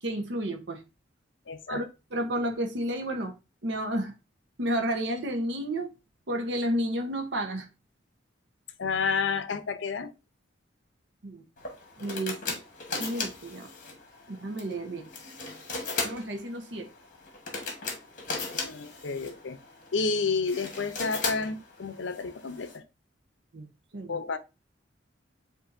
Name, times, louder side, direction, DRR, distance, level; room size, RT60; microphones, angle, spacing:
voice 1, 0.0-0.8 1.7-1.8 2.1-3.3 3.6-4.1 4.6-5.9 6.3-7.7 11.2-11.4 12.0-12.6 13.0-13.7 14.3-15.0 16.0-16.9 23.5-24.2, right 1 dB, 65° right, 0.8 m, -31 dB
voice 2, 1.5-1.8 8.8-10.1 18.5-19.6 19.9-22.8 24.1-24.4, left 4 dB, 70° left, 0.6 m, -30 dB
sound 1, 11.6-22.8, left 3 dB, 40° left, 1.2 m, -37 dB
7.7 x 2.7 x 2.5 m
head